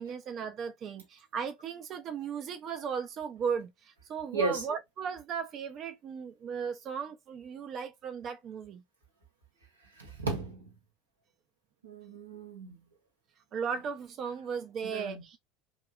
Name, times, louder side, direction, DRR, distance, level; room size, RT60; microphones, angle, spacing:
voice 1, 0.0-8.8 13.5-15.4, right 6 dB, 45° right, 0.3 m, -36 dB
voice 2, 10.0-10.7 11.8-12.8 14.8-15.2, right 3 dB, 90° right, 0.8 m, -35 dB
2.8 x 2.0 x 2.2 m
hypercardioid pair, 70°, 0 cm